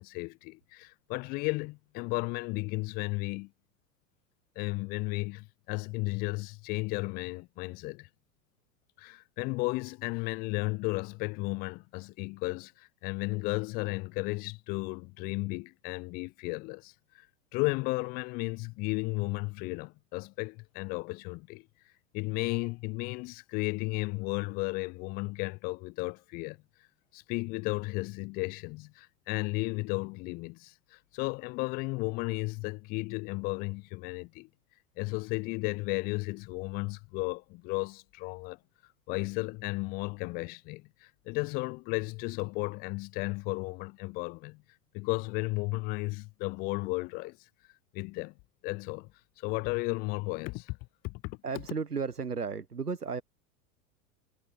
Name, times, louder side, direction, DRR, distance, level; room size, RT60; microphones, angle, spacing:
voice 1, 0.0-3.5 4.6-8.1 9.0-17.3 17.5-21.7 22.1-26.6 27.1-34.5 35.0-38.6 39.1-44.6 44.9-47.4 47.9-48.3 48.6-49.1 49.4-50.8 51.0-51.4, left 26 dB, 20° left, 0.4 m, -34 dB
voice 2, 51.4-53.2, right 5 dB, 85° right, 1.1 m, -34 dB
figure-of-eight pair, 90°, 45 cm